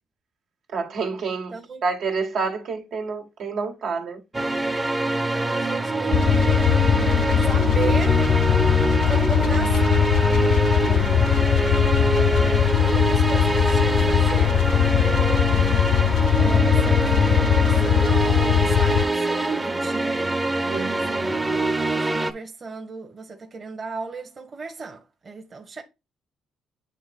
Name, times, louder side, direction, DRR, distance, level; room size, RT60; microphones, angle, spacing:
voice 1, 0.7-4.2 10.8-11.3 20.7-21.1, right 4 dB, 65° right, 2.0 m, -29 dB
voice 2, 1.5-1.8 5.3-6.7 7.4-8.3 9.0-10.2 11.8-20.3 20.8-21.5 21.8-25.8, right 4 dB, 35° right, 1.4 m, -36 dB
sound 1, 4.3-22.3, right 2 dB, 15° right, 0.9 m, -24 dB
sound 2, 6.1-19.0, left 10 dB, 70° left, 0.6 m, -20 dB
9.3 x 3.3 x 3.7 m
cardioid pair, 110°, 0 cm